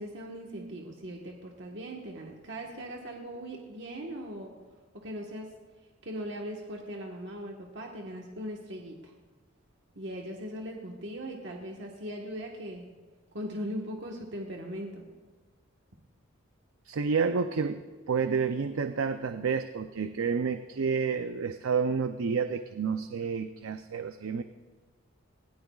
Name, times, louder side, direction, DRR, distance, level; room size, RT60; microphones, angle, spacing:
voice 1, 0.0-4.5 4.9-5.5 6.0-9.1 9.9-12.9 13.3-15.0, equal, 55° right, 0 dB, 1.4 m, -39 dB
voice 2, 16.9-24.4, right 5 dB, 80° right, 9 dB, 0.5 m, -30 dB
20.5 x 18.0 x 2.4 m, 1.4 s
head